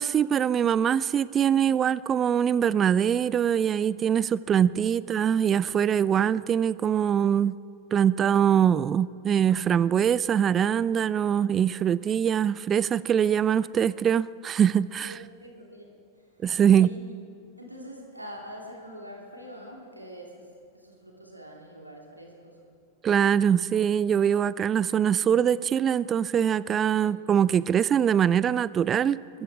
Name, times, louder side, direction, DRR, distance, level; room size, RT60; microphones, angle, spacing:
voice 1, 0.0-7.6 7.9-15.1 16.4-16.9 23.0-29.2, right 8 dB, 25° right, 19 dB, 0.4 m, -23 dB
voice 2, 15.0-17.1 17.6-22.6 27.0-27.2, equal, 85° right, 0 dB, 2.7 m, -45 dB
21.5 x 13.5 x 4.8 m, 2.3 s
figure-of-eight pair, 90°, 0 cm